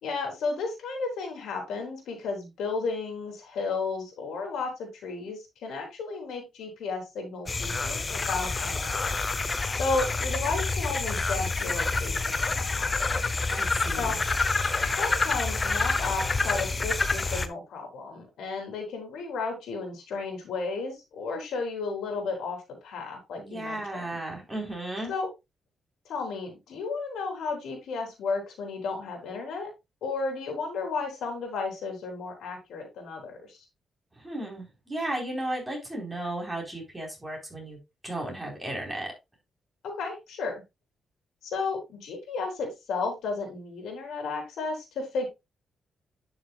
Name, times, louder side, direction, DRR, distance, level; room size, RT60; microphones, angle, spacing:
voice 1, 0.0-9.1 9.8-13.4 14.0-14.2 15.0-24.2 25.1-25.3 26.1-29.7 30.0-33.6 39.8-40.6 41.4-45.3, left 4 dB, 90° left, 3 dB, 3.7 m, -33 dB
sound 1, 7.5-17.5, left 3 dB, 25° left, 0.8 m, -28 dB
voice 2, 13.5-14.2 23.4-25.1 34.2-37.8 38.0-39.1, right 1 dB, 15° right, 0 dB, 4.3 m, -34 dB
11.0 x 6.4 x 2.4 m, 0.22 s
cardioid pair, 135°, 0 cm